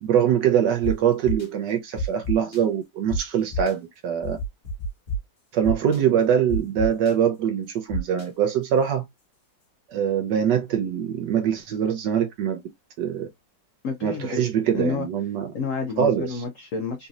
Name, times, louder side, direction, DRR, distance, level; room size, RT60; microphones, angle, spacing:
voice 1, 0.0-4.4 5.5-9.0 9.9-12.6 13.0-13.3 14.0-15.5 16.0-16.4, right 8 dB, 75° right, 1.2 m, -23 dB
sound 1, 0.8-0.9 1.2-1.5 2.0-2.6 3.1-3.2 3.5-3.7 4.2-5.2 5.6-6.0 6.5-7.1 7.9-8.2, equal, 40° left, 1.3 m, -28 dB
voice 2, 13.8-14.5 14.7-15.1 15.5-17.1, left 4 dB, 80° left, 0.7 m, -29 dB
4.0 x 2.7 x 2.4 m
omnidirectional pair, 2.0 m